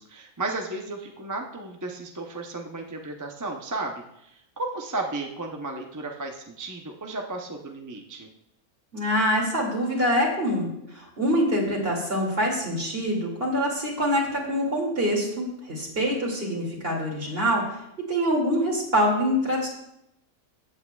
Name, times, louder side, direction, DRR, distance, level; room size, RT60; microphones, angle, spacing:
voice 1, 0.0-8.3, right 2 dB, 20° right, 2 dB, 0.5 m, -34 dB
voice 2, 8.9-17.6 18.1-19.7, equal, 45° right, -2 dB, 2.7 m, -25 dB
14.5 x 8.4 x 2.3 m, 0.80 s
omnidirectional pair, 1.4 m